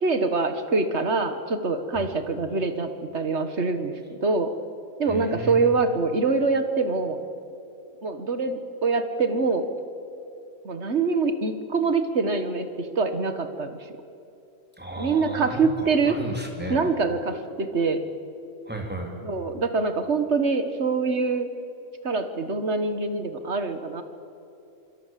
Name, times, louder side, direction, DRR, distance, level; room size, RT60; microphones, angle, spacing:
voice 1, 0.0-4.5 5.0-7.2 8.0-9.7 10.6-13.8 15.0-16.2 16.7-18.0 19.2-21.5 22.0-24.0, right 4 dB, 50° right, 9 dB, 1.8 m, -25 dB
voice 2, 5.1-5.7 14.8-16.8 18.7-19.1, right 1 dB, 5° right, 1 dB, 3.8 m, -34 dB
27.0 x 25.0 x 7.6 m, 2.7 s
omnidirectional pair, 1.5 m